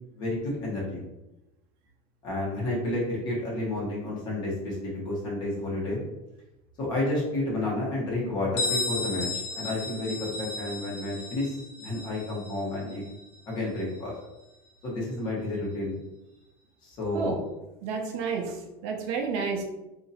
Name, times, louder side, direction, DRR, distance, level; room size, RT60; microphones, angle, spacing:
voice 1, 0.1-1.0 2.2-6.0 6.8-13.0 13.5-14.1 14.8-16.0 16.8-17.3, left 2 dB, 35° left, -5 dB, 1.3 m, -31 dB
Bell, 8.6-14.1, left 3 dB, 85° left, 1.4 m, -34 dB
voice 2, 17.8-19.6, right 5 dB, 55° right, 2 dB, 0.6 m, -30 dB
2.8 x 2.7 x 4.1 m, 0.98 s
cardioid pair, 175°, 13 cm